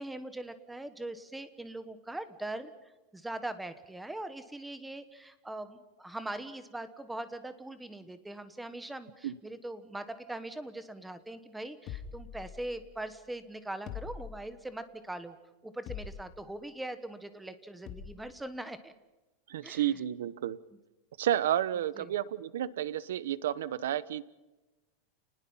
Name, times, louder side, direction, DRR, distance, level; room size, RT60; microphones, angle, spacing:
voice 1, 0.0-15.4 15.6-18.9 19.6-19.9 22.0-22.1, right 1 dB, 5° right, 11 dB, 1.3 m, -41 dB
sound 1, 11.9-13.0 13.9-14.8 15.9-16.6 17.9-18.3, left 8 dB, 35° left, 1.9 m, -44 dB
voice 2, 19.5-20.6 21.2-24.2, right 11 dB, 90° right, 18 dB, 1.0 m, -31 dB
29.5 x 20.0 x 5.7 m, 1.1 s
supercardioid pair, 165°, 0 cm